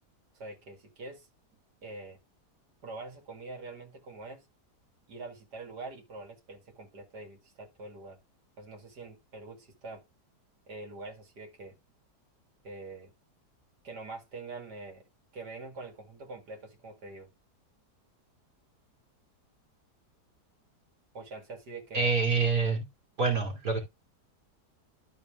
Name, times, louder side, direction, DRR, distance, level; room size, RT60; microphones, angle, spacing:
voice 1, 0.3-1.3 1.8-2.2 2.8-4.4 5.1-8.2 8.6-10.0 10.7-11.8 12.6-13.1 13.8-15.0 15.3-17.3 21.1-22.1, right 3 dB, 75° right, 2.9 m, -44 dB
voice 2, 21.9-22.9 23.2-23.8, right 4 dB, 60° right, 3.3 m, -26 dB
12.5 x 4.4 x 3.5 m
omnidirectional pair, 1.8 m